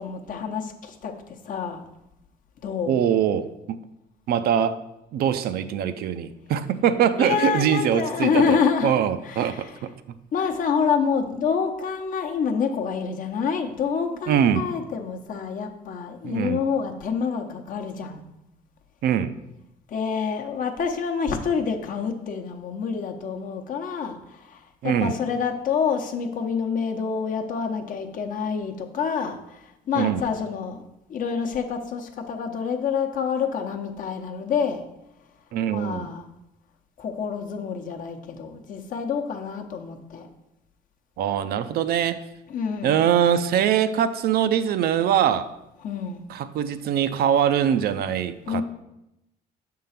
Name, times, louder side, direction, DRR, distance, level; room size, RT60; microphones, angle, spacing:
voice 1, 0.0-1.9 2.6-3.0 7.2-9.0 9.2-9.8 10.3-18.2 19.9-30.8 31.1-34.8 35.7-36.3 37.0-40.3 42.5-43.0 45.8-46.2 48.5-48.6, left 6 dB, 50° left, 4 dB, 0.8 m, -27 dB
voice 2, 2.9-3.8 4.3-4.8 5.1-9.9 14.3-14.7 16.2-16.6 19.0-19.4 24.8-25.1 30.0-30.2 35.5-36.1 41.2-42.2 42.8-45.5 46.3-48.6, right 9 dB, 65° right, 11 dB, 0.5 m, -23 dB
6.6 x 3.8 x 5.7 m, 0.89 s
cardioid pair, 110°, 17 cm